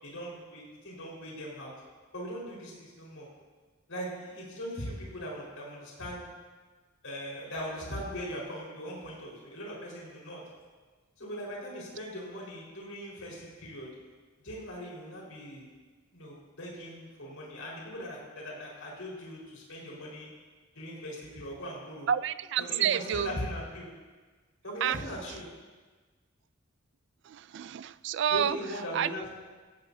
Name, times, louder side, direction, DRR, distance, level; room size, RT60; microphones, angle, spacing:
voice 1, 0.0-1.7 2.1-3.3 3.9-6.3 7.0-10.4 11.2-13.9 14.4-15.7 16.1-20.3 20.7-22.1 22.6-23.9 24.6-25.5 28.3-29.3, equal, 85° left, -4 dB, 4.7 m, -40 dB
voice 2, 22.1-23.3 24.8-25.0 27.3-28.6 28.9-29.1, right 9 dB, 60° right, 15 dB, 0.3 m, -29 dB
17.0 x 16.5 x 2.8 m, 1.4 s
head